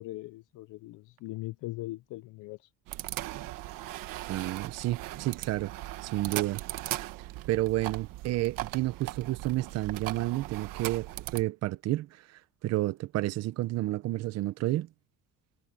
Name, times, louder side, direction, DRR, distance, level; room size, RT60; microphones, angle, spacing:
voice 1, 0.0-2.7, left 18 dB, 65° left, 0.7 m, -40 dB
sound 1, 2.9-11.4, right 16 dB, 70° right, 1.5 m, -38 dB
voice 2, 4.3-5.7 6.0-6.6 7.5-11.1 11.3-12.1 12.6-14.9, right 16 dB, 50° right, 0.7 m, -30 dB
cardioid pair, 175°, 33 cm